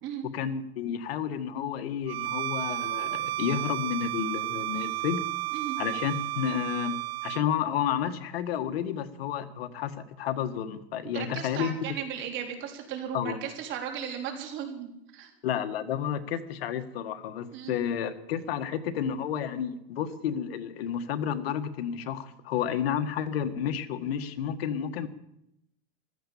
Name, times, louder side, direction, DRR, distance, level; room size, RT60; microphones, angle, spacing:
voice 1, 0.3-5.3 5.8-11.7 13.1-13.4 15.4-25.1, left 9 dB, 75° left, 9 dB, 1.7 m, -31 dB
Bowed string instrument, 2.1-7.5, right 17 dB, 75° right, 1.0 m, -32 dB
voice 2, 11.1-15.3 17.5-17.7, right 8 dB, 40° right, 3 dB, 3.7 m, -36 dB
15.0 x 13.5 x 7.2 m, 0.81 s
supercardioid pair, 140°, 30 cm